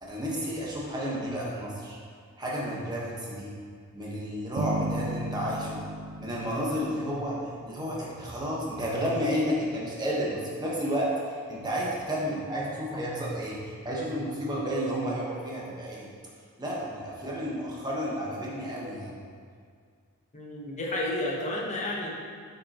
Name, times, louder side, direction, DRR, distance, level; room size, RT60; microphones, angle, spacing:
voice 1, 0.0-2.0 2.4-3.5 3.9-5.8 6.2-11.1 11.5-16.1 16.6-19.2, equal, 20° right, -5 dB, 1.2 m, -31 dB
Bass guitar, 4.6-7.7, right 1 dB, 65° right, 0.4 m, -35 dB
voice 2, 20.3-22.1, left 1 dB, 35° left, -2 dB, 1.0 m, -31 dB
8.1 x 5.5 x 3.0 m, 2.1 s
head